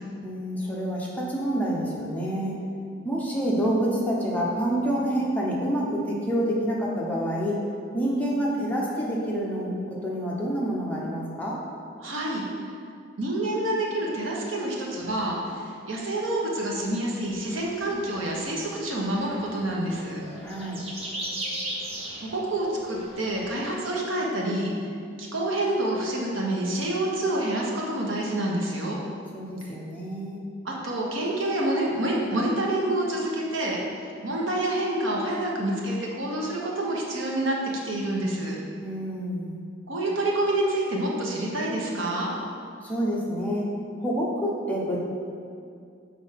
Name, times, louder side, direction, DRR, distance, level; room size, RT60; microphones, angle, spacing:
voice 1, 0.2-2.5 3.0-7.6 7.9-11.6 20.4-20.8 29.3-30.4 38.8-39.6 42.8-43.7 44.0-45.0, equal, 10° left, -5 dB, 0.9 m, -27 dB
voice 2, 12.0-12.7 13.2-20.2 22.2-24.7 25.2-29.0 30.6-33.8 34.2-37.6 37.8-38.6 39.9-42.3, right 1 dB, 85° right, -2 dB, 1.2 m, -27 dB
sound 1, 17.4-23.7, right 1 dB, 30° right, 1.0 m, -38 dB
6.2 x 4.0 x 5.8 m, 2.4 s
head